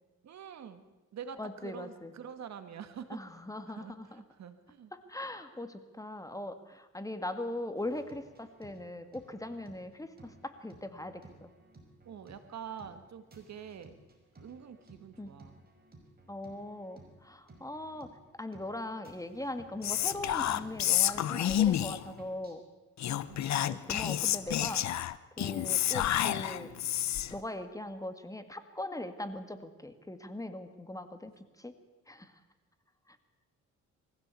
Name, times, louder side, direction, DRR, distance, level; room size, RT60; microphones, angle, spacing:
voice 1, 0.2-0.8 1.1-3.2 3.7-4.9 12.0-14.0 14.4-15.6 17.6-17.7 23.1-23.6 25.4-25.6, right 7 dB, 60° right, 10 dB, 2.0 m, -46 dB
voice 2, 1.4-2.1 3.1-4.1 4.9-11.5 15.2-15.3 16.3-18.1 18.4-22.6 23.7-24.8 25.4-26.7 27.3-31.3 31.6-31.7 32.1-32.3 33.1-33.2, left 1 dB, 10° left, 9 dB, 2.0 m, -40 dB
sound 1, 7.8-22.5, right 2 dB, 30° right, 5.6 m, -57 dB
Whispering, 19.8-22.1 23.0-27.4, left 11 dB, 65° left, 1.0 m, -29 dB
23.0 x 16.0 x 8.4 m, 1.2 s
cardioid pair, 90°, 30 cm